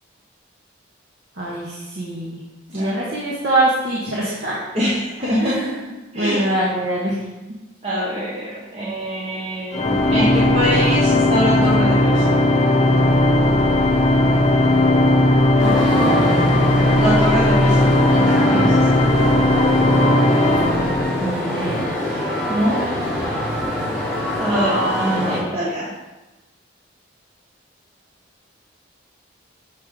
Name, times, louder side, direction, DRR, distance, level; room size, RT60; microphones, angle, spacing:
voice 1, 1.4-2.4 2.7-4.6 5.4-7.2 15.6-16.2 21.1-21.9 25.0-25.4, right 1 dB, 60° right, -5 dB, 1.2 m, -24 dB
voice 2, 2.7-3.1 4.7-5.7 6.1-6.5 7.8-12.4 16.9-19.0 22.5-22.9 24.3-26.0, equal, 30° right, -7 dB, 0.9 m, -24 dB
Organ, 9.7-21.6, left 1 dB, 35° left, 0.7 m, -17 dB
sound 1, 15.6-25.4, left 1 dB, 5° right, 1.9 m, -24 dB
6.7 x 3.6 x 4.7 m, 1.1 s
head